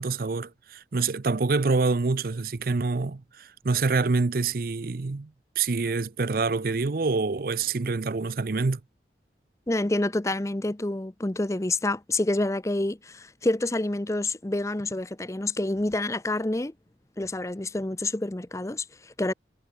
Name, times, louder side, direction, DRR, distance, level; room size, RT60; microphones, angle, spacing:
voice 1, 0.0-5.3 5.6-8.8, right 4 dB, 55° right, 0.6 m, -26 dB
voice 2, 9.7-16.7 17.2-19.3, left 2 dB, 15° left, 0.6 m, -28 dB
head